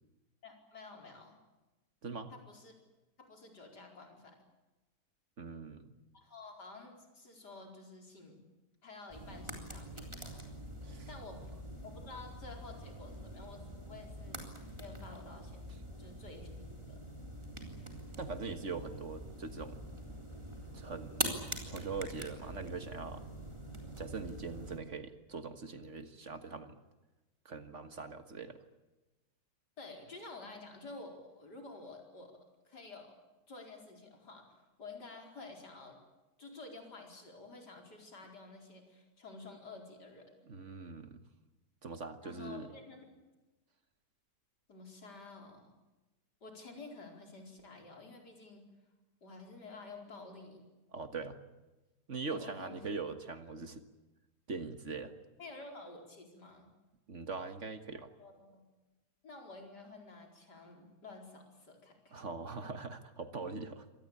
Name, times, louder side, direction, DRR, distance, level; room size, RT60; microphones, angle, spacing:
voice 1, 0.4-1.4 2.3-2.7 3.2-4.4 6.1-8.4 8.8-10.5 11.1-14.5 14.8-15.7 16.0-17.0 29.8-32.3 32.7-33.1 33.5-34.5 34.8-36.0 36.4-40.3 42.2-43.1 44.7-45.8 46.4-48.7 49.2-50.6 52.3-52.9 55.4-56.7 58.2-58.6 59.2-62.2, left 3 dB, 80° left, 3 dB, 5.2 m, -51 dB
voice 2, 5.4-5.9 10.8-11.1 18.2-19.8 20.7-21.3 21.7-23.2 24.0-26.8 27.5-28.6 40.5-41.2 41.8-42.7 50.9-51.4 52.1-53.8 54.5-55.1 57.1-58.1 62.1-63.9, right 4 dB, 45° right, 9 dB, 1.7 m, -42 dB
sound 1, 9.1-24.8, right 1 dB, 15° right, 3.7 m, -44 dB
25.5 x 19.0 x 8.7 m, 1.1 s
omnidirectional pair, 1.8 m